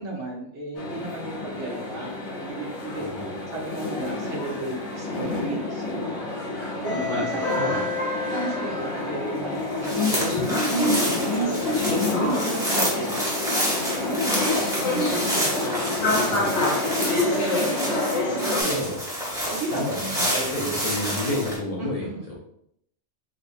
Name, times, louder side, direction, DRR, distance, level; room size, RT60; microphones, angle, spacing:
voice 1, 0.0-3.1 3.5-7.8 8.2-13.2 14.0-14.4 14.7-16.1 16.4-18.9 19.5-20.8 21.8-22.4, right 2 dB, 70° right, -2 dB, 1.2 m, -34 dB
sound 1, 0.8-18.6, left 2 dB, 65° left, 1.1 m, -27 dB
voice 2, 3.0-3.3 7.0-7.8 16.1-16.4 18.6-19.0 19.7-20.3 20.5-22.3, left 1 dB, 40° left, -3 dB, 0.6 m, -30 dB
sound 2, 9.6-21.6, equal, 5° right, 0.8 m, -28 dB
3.4 x 3.0 x 2.5 m, 0.72 s
omnidirectional pair, 1.3 m